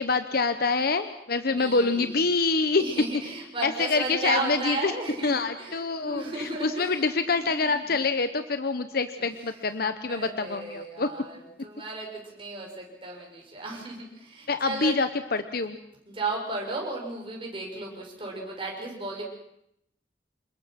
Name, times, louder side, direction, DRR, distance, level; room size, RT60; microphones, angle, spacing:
voice 1, 0.0-2.8 3.6-4.9 5.2-11.1 14.5-15.8, left 4 dB, 60° left, 9 dB, 1.0 m, -26 dB
voice 2, 1.5-7.9 9.2-15.0 16.1-19.2, right 2 dB, 30° right, -1 dB, 6.9 m, -35 dB
27.5 x 21.5 x 5.9 m, 0.78 s
head